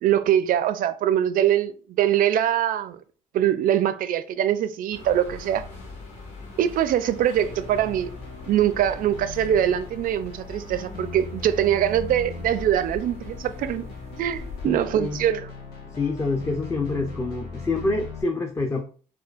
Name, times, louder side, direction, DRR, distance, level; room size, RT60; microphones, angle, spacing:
voice 1, 0.0-3.0 3.3-5.7 6.6-8.1 8.5-13.8 14.1-15.5, right 10 dB, 55° right, 0.4 m, -23 dB
sound 1, 4.9-14.6, left 3 dB, 40° left, 1.2 m, -42 dB
sound 2, 7.3-18.2, left 4 dB, 70° left, 0.9 m, -39 dB
voice 2, 14.6-15.2 16.0-18.8, left 3 dB, 15° left, 0.4 m, -27 dB
4.4 x 2.3 x 2.3 m
cardioid pair, 110°, 17 cm